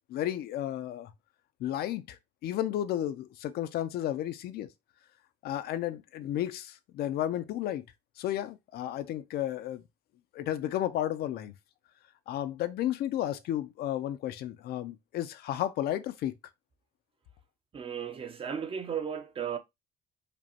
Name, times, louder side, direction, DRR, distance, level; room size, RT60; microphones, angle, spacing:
voice 1, 0.1-1.1 1.6-4.7 5.4-7.9 8.2-9.8 10.3-11.5 12.3-16.3, left 12 dB, 70° left, 0.5 m, -33 dB
voice 2, 17.7-19.6, right 7 dB, 30° right, 0.6 m, -35 dB
5.1 x 2.2 x 2.8 m
cardioid pair, 110°, 17 cm